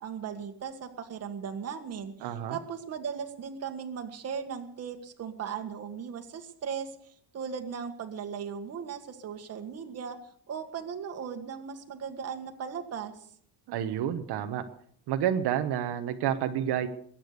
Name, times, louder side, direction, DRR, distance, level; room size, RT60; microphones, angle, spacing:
voice 1, 0.0-10.2 10.5-13.3, right 7 dB, 35° right, 6 dB, 1.7 m, -37 dB
voice 2, 2.2-2.6 13.7-14.6 15.1-16.9, right 10 dB, 70° right, 7 dB, 1.2 m, -29 dB
21.5 x 8.9 x 6.7 m, 0.62 s
cardioid pair, 180°, 41 cm